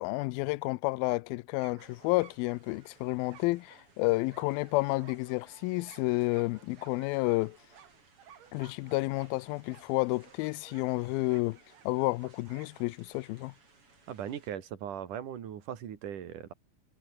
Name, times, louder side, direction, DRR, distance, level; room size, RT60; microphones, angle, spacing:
voice 1, 0.0-7.6 8.5-11.6 11.9-13.5, left 22 dB, 80° left, 2.4 m, -30 dB
sound 1, 1.6-13.1, right 9 dB, 85° right, 4.6 m, -58 dB
sound 2, 1.8-14.5, right 3 dB, 35° right, 6.0 m, -63 dB
voice 2, 14.1-16.5, right 9 dB, 60° right, 3.5 m, -39 dB
omnidirectional pair, 4.4 m